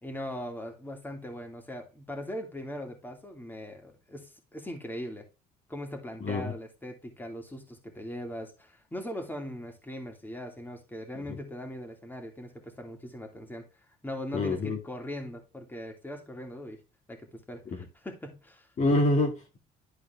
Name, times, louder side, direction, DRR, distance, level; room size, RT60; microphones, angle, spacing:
voice 1, 0.0-5.2 5.7-13.6 14.0-16.8 17.1-18.7, left 1 dB, 10° left, 2.8 m, -40 dB
voice 2, 6.2-6.5 14.3-14.8 18.8-19.6, left 2 dB, 45° left, 2.1 m, -26 dB
12.0 x 4.7 x 3.5 m
cardioid pair, 110°, 17 cm